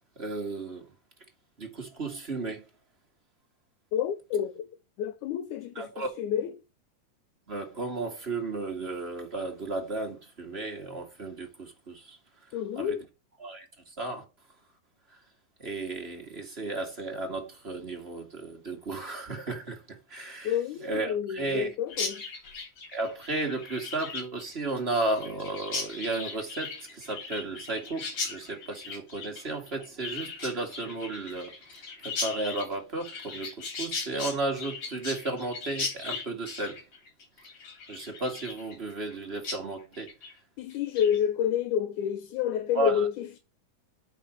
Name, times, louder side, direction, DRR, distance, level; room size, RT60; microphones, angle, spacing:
voice 1, 0.1-0.9 1.6-2.6 5.7-6.1 7.5-12.2 12.7-13.0 13.4-14.2 15.6-21.7 22.9-31.5 32.0-36.8 37.9-40.1 42.7-43.1, right 2 dB, 25° right, 1.8 m, -34 dB
voice 2, 3.9-4.7 5.0-6.5 12.5-13.0 20.4-22.2 40.6-43.4, left 9 dB, 75° left, 2.3 m, -29 dB
Chirp tweet, 21.9-39.2 39.4-39.6 39.9-40.3 40.7-41.2, left 4 dB, 45° left, 3.5 m, -38 dB
9.1 x 5.0 x 6.5 m
omnidirectional pair, 3.6 m